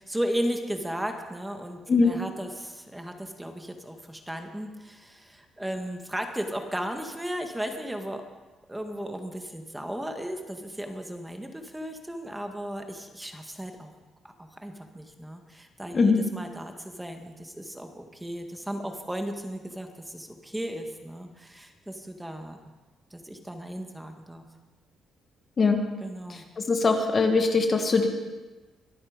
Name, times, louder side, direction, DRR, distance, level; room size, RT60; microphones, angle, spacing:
voice 1, 0.0-8.2 8.7-13.9 14.2-22.6 23.1-24.4 26.0-26.4, equal, 10° right, 5 dB, 1.8 m, -35 dB
voice 2, 26.3-28.1, left 4 dB, 40° left, 5 dB, 1.6 m, -22 dB
24.0 x 8.8 x 5.2 m, 1.2 s
cardioid pair, 90°, 0 cm